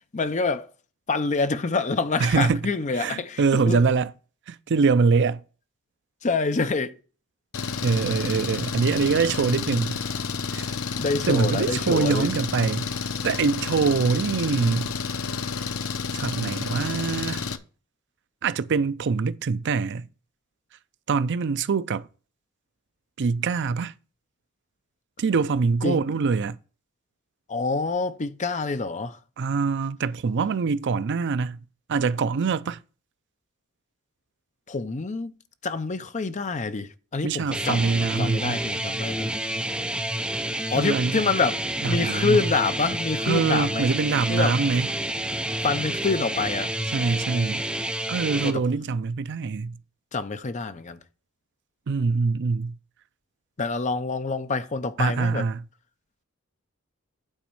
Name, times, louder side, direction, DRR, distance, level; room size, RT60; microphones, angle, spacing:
voice 1, 0.1-0.7 1.1-3.9 6.2-7.0 11.0-12.3 25.8-26.0 27.5-29.2 34.7-35.3 35.6-39.4 40.7-43.9 44.3-44.6 45.6-46.7 48.4-48.6 50.1-51.0 53.6-55.4, left 4 dB, 35° left, 0.6 m, -26 dB
voice 2, 2.2-2.6 3.0-4.1 4.5-5.4 7.8-10.0 10.5-10.7 11.3-12.9 13.2-14.9 16.1-17.4 18.4-20.1 21.1-22.1 23.2-23.9 25.2-26.6 29.4-31.6 31.9-32.8 37.2-38.6 40.7-41.2 41.8-42.4 43.3-44.9 46.9-47.6 48.1-49.8 51.9-52.7 55.0-55.6, right 4 dB, 55° right, 0.5 m, -24 dB
Engine, 7.5-17.6, left 5 dB, 70° left, 0.7 m, -30 dB
sound 1, 37.5-48.5, right 1 dB, 5° right, 0.7 m, -29 dB
8.9 x 4.2 x 7.0 m
head